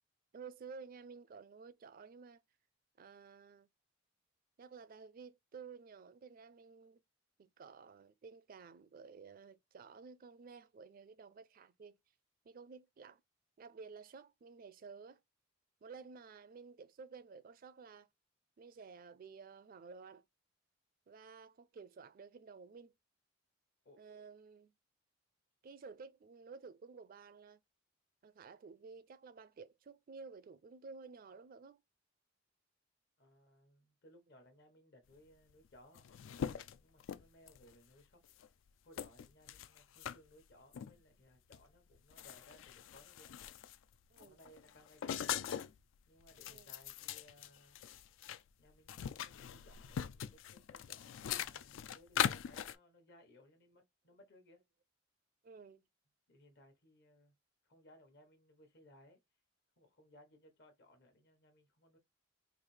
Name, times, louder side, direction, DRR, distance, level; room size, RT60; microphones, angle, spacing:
voice 1, 0.3-2.4 3.0-3.7 4.6-7.0 7.4-12.0 12.4-13.2 13.6-15.2 15.8-18.1 18.6-20.2 21.1-22.9 24.0-24.7 25.6-27.6 28.2-31.8 44.1-44.4 46.5-46.7 55.4-55.8, right 5 dB, 50° right, 0.4 m, -53 dB
voice 2, 33.2-36.1 36.8-38.2 38.8-43.3 44.2-45.5 46.1-47.8 48.6-54.6 56.3-57.3 57.6-59.2 59.8-62.0, left 1 dB, 60° left, 1.1 m, -63 dB
sound 1, 35.5-35.6 35.8-37.7 38.3-38.5 39.0-40.2 40.7-40.9 41.5-41.6 42.0-43.8 44.2-45.8 46.2-48.4 48.7-52.8, left 9 dB, 80° left, 0.3 m, -41 dB
4.0 x 2.7 x 3.1 m
head